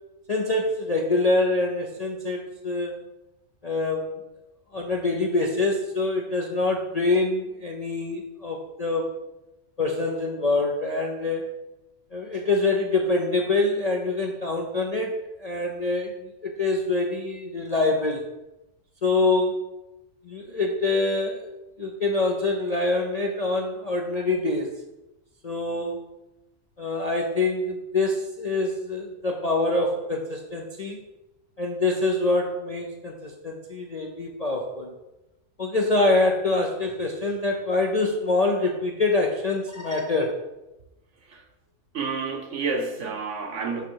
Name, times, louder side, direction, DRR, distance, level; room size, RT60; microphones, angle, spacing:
voice 1, 0.3-3.0 3.6-4.2 4.7-9.1 9.8-11.5 12.1-18.2 19.0-19.6 20.2-21.5 21.8-24.7 25.4-26.0 26.8-31.0 31.6-34.9 35.6-40.4, left 2 dB, 40° left, 0 dB, 0.5 m, -25 dB
voice 2, 41.9-43.9, right 4 dB, 60° right, 4 dB, 1.1 m, -29 dB
6.9 x 5.8 x 4.6 m, 0.97 s
omnidirectional pair, 1.5 m